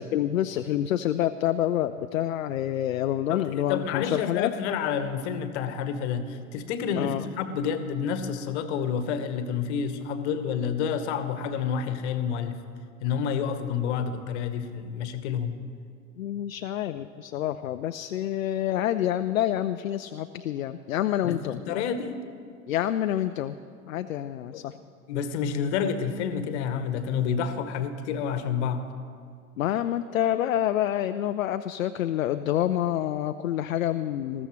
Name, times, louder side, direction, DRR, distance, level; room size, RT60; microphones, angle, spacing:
voice 1, 0.0-4.5 7.0-7.2 16.2-21.6 22.7-23.6 23.9-24.7 29.6-34.5, left 11 dB, 70° left, 10 dB, 0.6 m, -27 dB
voice 2, 3.3-12.6 13.0-15.5 21.2-22.3 24.5-24.6 25.1-28.8, left 7 dB, 50° left, 10 dB, 1.2 m, -29 dB
20.5 x 14.5 x 3.1 m, 2.2 s
figure-of-eight pair, 85°, 43 cm